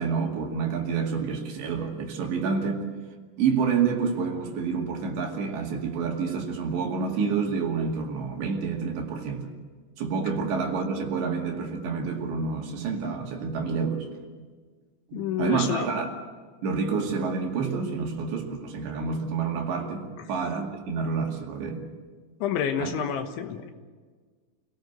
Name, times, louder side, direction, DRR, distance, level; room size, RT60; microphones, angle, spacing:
voice 1, 0.0-2.8 3.4-9.5 10.0-14.1 15.1-16.1 16.6-21.9 22.8-22.9, right 5 dB, 65° right, 2 dB, 4.3 m, -28 dB
voice 2, 15.1-15.9 22.4-23.7, left 8 dB, 75° left, 6 dB, 3.5 m, -28 dB
27.0 x 18.0 x 8.1 m, 1.5 s
omnidirectional pair, 5.8 m